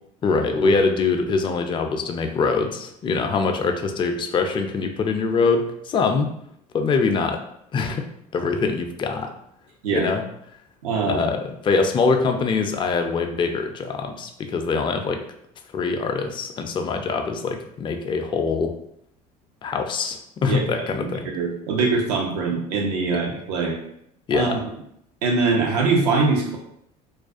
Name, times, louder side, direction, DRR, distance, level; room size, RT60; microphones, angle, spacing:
voice 1, 0.2-6.3 6.7-7.4 7.7-9.3 9.9-10.2 11.0-15.2 15.7-18.7 19.6-21.3 24.3-24.6, left 4 dB, 25° left, 5 dB, 0.3 m, -23 dB
voice 2, 10.8-11.2 20.5-20.9 21.2-23.8 24.3-24.6 25.2-26.6, right 4 dB, 80° right, 0 dB, 0.6 m, -22 dB
2.4 x 2.2 x 2.4 m, 0.73 s
hypercardioid pair, 75°, 19 cm